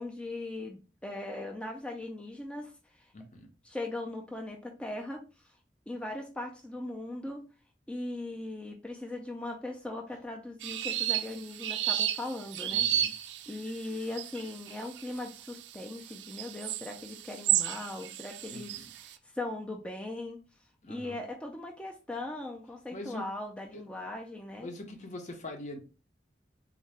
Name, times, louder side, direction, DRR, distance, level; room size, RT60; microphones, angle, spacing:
voice 1, 0.0-3.1 3.6-5.5 5.9-7.4 7.9-12.8 13.5-20.4 20.9-24.7, left 2 dB, 5° left, 0.3 m, -39 dB
voice 2, 3.1-3.5 12.7-13.1 18.5-18.9 20.8-21.2 22.9-23.2 23.7-23.8 24.6-25.8, left 1 dB, 45° left, 0.7 m, -43 dB
sound 1, 10.6-19.0, right 12 dB, 85° right, 0.3 m, -32 dB
3.7 x 2.2 x 3.3 m
head